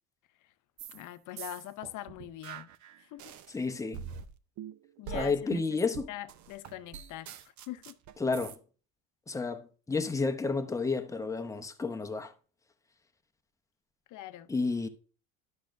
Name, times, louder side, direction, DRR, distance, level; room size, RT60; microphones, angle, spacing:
sound 1, 0.8-1.1 1.4-3.5 3.9-8.6, right 8 dB, 45° right, 0.6 m, -43 dB
voice 1, 0.9-2.7 3.0-3.4 5.0-5.8 6.1-7.3 7.7-8.0 14.1-14.5, left 14 dB, 50° left, 0.6 m, -43 dB
voice 2, 3.5-4.1 5.1-6.1 8.2-8.6 9.3-12.3 14.5-14.9, left 4 dB, 10° left, 0.6 m, -31 dB
10.0 x 6.3 x 2.5 m
supercardioid pair, 105°, 40 cm